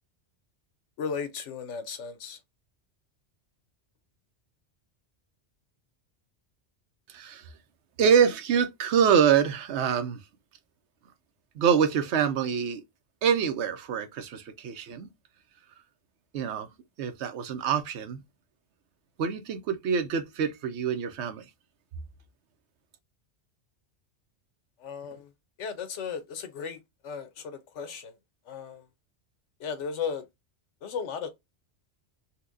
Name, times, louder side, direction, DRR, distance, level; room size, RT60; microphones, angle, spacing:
voice 1, 1.0-2.4 24.8-25.3 25.6-28.1 28.5-28.9 29.6-30.2 30.8-31.3, left 6 dB, 90° left, 1.1 m, -35 dB
voice 2, 7.1-7.4 8.0-10.2 11.6-12.8 13.2-15.1 16.3-16.7 17.0-18.2 19.2-21.4, right 7 dB, 75° right, 0.9 m, -25 dB
4.2 x 2.2 x 2.5 m
omnidirectional pair, 1.2 m